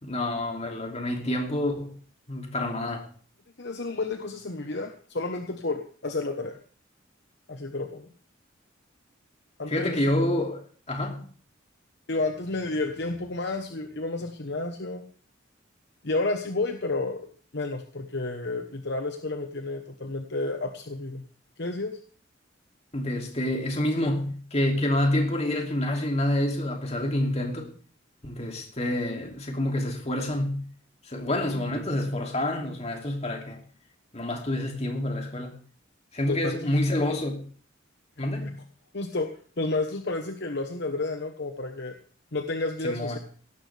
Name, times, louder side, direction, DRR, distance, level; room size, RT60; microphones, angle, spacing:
voice 1, 0.0-1.9 2.3-3.1 9.6-11.3 22.9-27.7 28.2-30.6 31.0-33.6 34.1-35.6 36.1-37.4 38.2-38.6 42.8-43.2, left 1 dB, 35° left, 2.7 m, -28 dB
voice 2, 3.6-6.6 7.5-8.1 9.6-10.0 12.1-15.0 16.0-21.2 21.6-22.0 36.3-36.7 38.4-38.5 38.9-39.3 39.6-42.0 42.3-43.2, left 2 dB, 60° left, 1.1 m, -31 dB
17.0 x 13.0 x 3.4 m
head